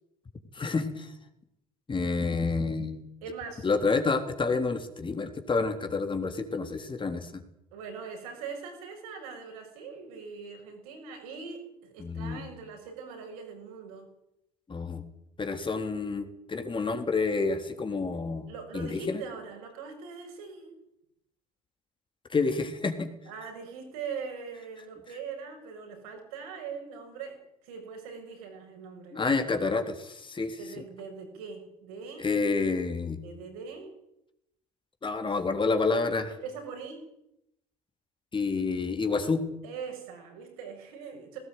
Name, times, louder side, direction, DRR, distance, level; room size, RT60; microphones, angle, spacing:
voice 1, 0.5-1.1 1.9-3.0 3.6-7.4 12.0-12.4 14.7-15.0 15.4-19.2 22.3-23.1 29.1-30.6 32.2-33.2 35.0-36.3 38.3-39.4, left 4 dB, 25° left, 6 dB, 3.7 m, -29 dB
voice 2, 3.2-3.7 7.7-14.1 18.5-20.7 23.3-29.3 30.6-32.3 33.2-33.9 36.3-37.0 39.6-41.4, right 5 dB, 70° right, 4 dB, 6.8 m, -41 dB
19.0 x 19.0 x 9.6 m, 0.81 s
figure-of-eight pair, 60°, 19 cm